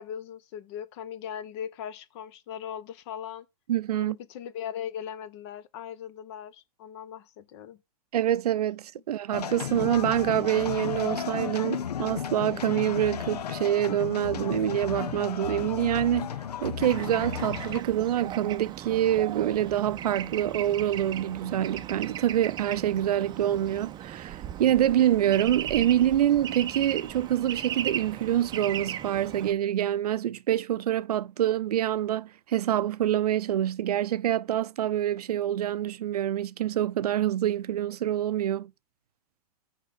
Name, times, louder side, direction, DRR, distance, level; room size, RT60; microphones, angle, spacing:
voice 1, 0.0-3.5 3.9-7.8, left 9 dB, 45° left, 1.1 m, -39 dB
voice 2, 3.7-4.1 8.1-16.3 16.6-38.7, right 11 dB, 75° right, 0.6 m, -26 dB
sound 1, 9.3-17.8, left 8 dB, 85° left, 0.7 m, -34 dB
Bird / Traffic noise roadway noise, 16.8-29.5, right 11 dB, 20° right, 0.6 m, -37 dB
6.5 x 5.3 x 4.8 m
hypercardioid pair, 125°, 20 cm